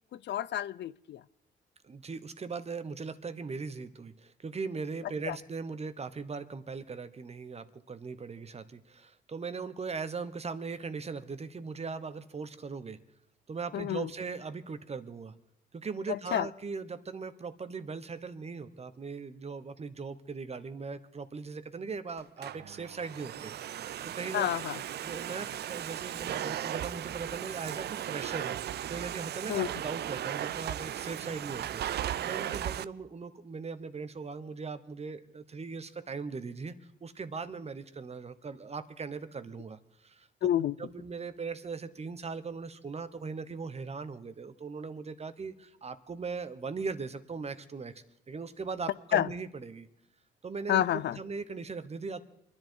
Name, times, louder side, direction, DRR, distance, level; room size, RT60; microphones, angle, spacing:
voice 1, 0.1-1.2 5.3-5.4 13.7-14.1 16.1-16.5 24.3-24.8 29.5-29.7 40.4-40.7 49.1-49.3 50.7-51.2, left 11 dB, 60° left, 0.5 m, -29 dB
voice 2, 1.8-13.0 13.5-15.3 15.7-24.5 25.0-36.7 37.0-40.5 40.8-47.9 48.3-49.9 50.4-52.2, right 4 dB, 30° right, 1.1 m, -39 dB
Domestic sounds home sounds, 22.2-32.9, right 11 dB, 55° right, 0.5 m, -36 dB
25.0 x 10.5 x 4.7 m
cardioid pair, 90°, 20 cm